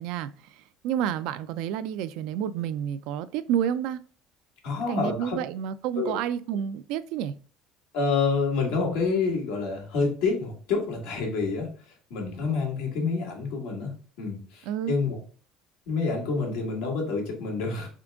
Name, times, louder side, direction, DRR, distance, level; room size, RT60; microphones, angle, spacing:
voice 1, 0.0-4.0 4.9-7.3 14.7-14.9, right 9 dB, 75° right, 0.4 m, -30 dB
voice 2, 4.6-5.4 6.0-6.2 7.9-13.9 14.2-15.2 15.9-17.9, left 4 dB, 80° left, 1.8 m, -28 dB
3.7 x 3.6 x 3.5 m
supercardioid pair, 100°, 0 cm